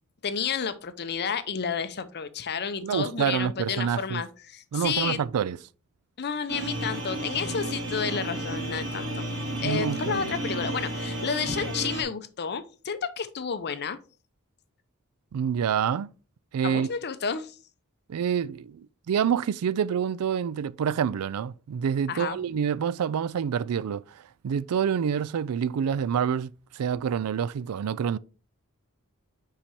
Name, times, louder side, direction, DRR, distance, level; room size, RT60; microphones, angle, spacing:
voice 1, 0.2-5.2 6.2-9.3 9.6-14.0 16.6-17.6 22.1-22.4, left 6 dB, 50° left, 0.7 m, -31 dB
voice 2, 2.8-4.2 4.7-5.6 9.6-10.2 15.3-16.1 16.5-16.9 18.1-28.2, right 8 dB, 85° right, 0.4 m, -27 dB
sound 1, 6.5-12.0, right 1 dB, 60° right, 2.4 m, -32 dB
5.8 x 4.9 x 4.3 m
head